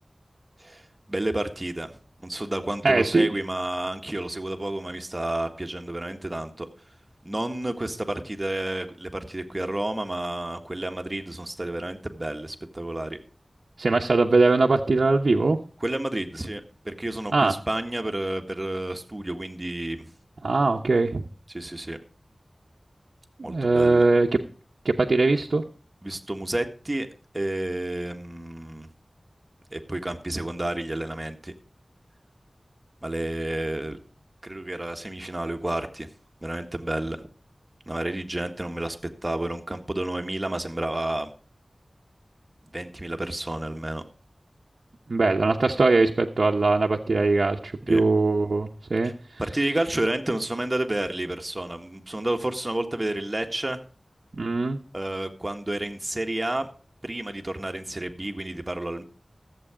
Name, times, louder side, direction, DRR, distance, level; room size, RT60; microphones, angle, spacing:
voice 1, 0.6-1.9 2.2-6.7 7.2-13.2 15.8-20.0 21.5-22.0 23.4-24.1 26.0-27.1 27.3-28.9 29.7-31.5 33.0-34.0 34.4-36.1 36.4-37.2 37.9-39.0 39.2-41.3 42.7-44.0 47.8-48.0 49.0-49.1 49.4-53.8 54.9-56.7 57.0-59.0, right 1 dB, 30° right, 6 dB, 1.6 m, -30 dB
voice 2, 2.8-3.3 13.8-15.6 17.3-17.5 20.4-21.2 23.4-24.4 24.8-25.6 45.1-49.1 54.3-54.8, right 3 dB, 80° right, 1 dB, 0.9 m, -21 dB
14.5 x 8.0 x 5.0 m, 0.39 s
wide cardioid pair, 55°, 0 cm